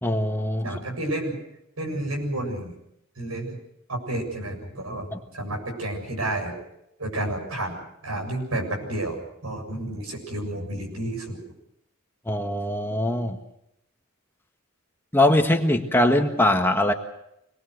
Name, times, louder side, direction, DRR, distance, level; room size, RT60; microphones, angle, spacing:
voice 1, 0.0-0.6 5.1-5.2 12.3-13.4 15.1-16.9, left 1 dB, 10° left, 4 dB, 1.5 m, -22 dB
voice 2, 0.6-1.4 1.8-2.7 3.2-3.6 3.9-5.1 5.3-6.5 7.0-11.4, right 1 dB, 85° right, 2 dB, 7.4 m, -30 dB
26.5 x 20.5 x 6.5 m, 0.81 s
head